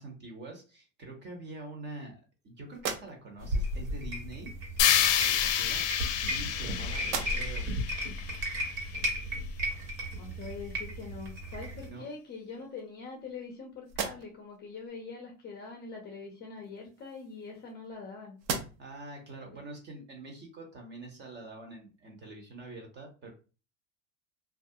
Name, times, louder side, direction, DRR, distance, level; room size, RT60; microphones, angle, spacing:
voice 1, 0.0-2.2 2.4-5.9 6.3-7.6 11.9-12.1 18.8-23.3, right 2 dB, 25° right, 2 dB, 0.7 m, -45 dB
sound 1, 2.7-3.6 4.7-4.8 5.8-6.7 7.0-7.7 8.2-8.3 11.0-11.1 11.5-12.2 12.8-13.5 13.8-14.6 16.6-18.0 18.4-19.1, right 5 dB, 60° right, 0.7 m, -40 dB
sound 2, 3.4-11.9, equal, 75° right, 1.3 m, -35 dB
sound 3, 4.8-8.9, left 10 dB, 70° left, 0.5 m, -29 dB
voice 2, 10.2-18.4 19.5-19.6, left 4 dB, 25° left, 1 dB, 0.6 m, -43 dB
2.4 x 2.0 x 2.6 m, 0.34 s
supercardioid pair, 115°, 41 cm